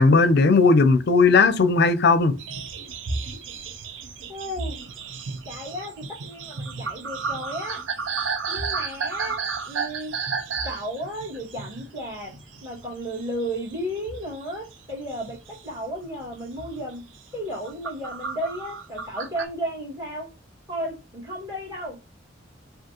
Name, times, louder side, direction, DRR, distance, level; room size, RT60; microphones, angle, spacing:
voice 1, 0.0-2.3, left 4 dB, 60° left, 0.5 m, -17 dB
sound 1, 2.4-12.8 13.1-13.8 14.1-15.6 16.0-16.2 16.6-16.8 17.3-19.4, right 5 dB, 75° right, 0.6 m, -32 dB
voice 2, 4.3-4.8 5.5-7.8 8.5-9.4 9.7-10.1 10.6-12.3 12.6-15.4 15.6-17.1 17.3-20.3 20.7-22.0, equal, 20° right, 2.0 m, -33 dB
5.0 x 2.5 x 2.9 m
head